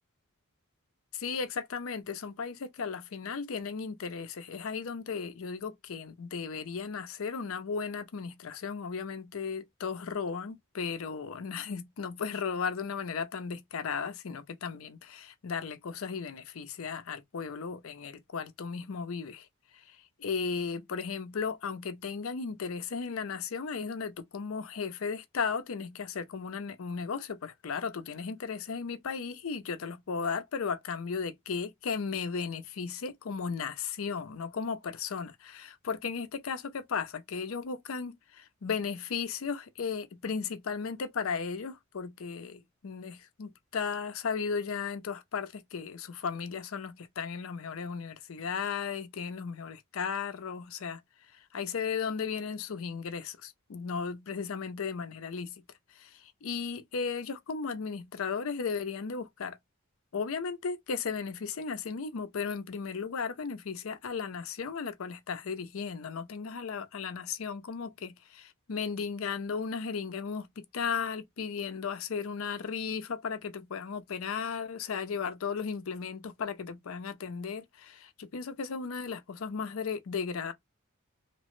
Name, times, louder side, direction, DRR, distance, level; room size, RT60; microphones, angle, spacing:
voice 1, 1.1-19.5 19.7-51.0 51.3-55.6 55.9-59.6 60.1-80.5, left 5 dB, 75° left, 0.5 m, -35 dB
2.9 x 2.0 x 3.0 m
head